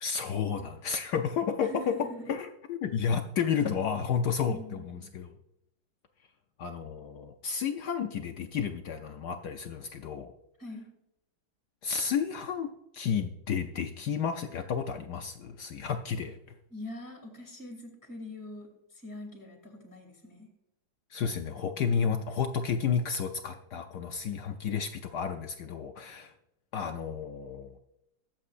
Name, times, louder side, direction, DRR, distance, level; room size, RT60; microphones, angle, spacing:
voice 1, 0.0-1.9 2.3-5.3 6.6-10.3 11.8-16.4 21.1-26.3 26.7-27.8, left 6 dB, 70° left, 6 dB, 1.0 m, -31 dB
voice 2, 1.6-2.3 4.4-5.0 10.6-10.9 16.7-20.5 22.0-22.2, left 1 dB, 10° left, 1 dB, 2.5 m, -43 dB
21.5 x 7.7 x 2.5 m, 0.85 s
omnidirectional pair, 2.3 m